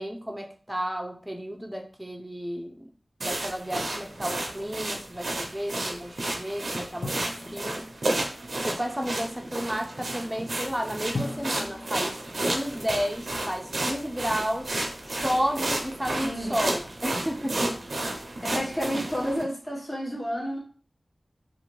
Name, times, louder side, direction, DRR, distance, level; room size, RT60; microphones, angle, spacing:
voice 1, 0.0-2.9 3.2-7.1 7.5-7.8 8.5-14.8 15.1-17.7, equal, 10° right, 2 dB, 0.6 m, -32 dB
sound 1, 3.2-19.4, right 1 dB, 75° right, 0.6 m, -32 dB
Drum, 7.0-8.5 11.1-13.3, left 2 dB, 85° left, 0.7 m, -38 dB
voice 2, 16.2-16.6 18.4-20.6, equal, 35° left, -4 dB, 1.2 m, -30 dB
2.6 x 2.5 x 3.1 m, 0.42 s
wide cardioid pair, 60°, 0 cm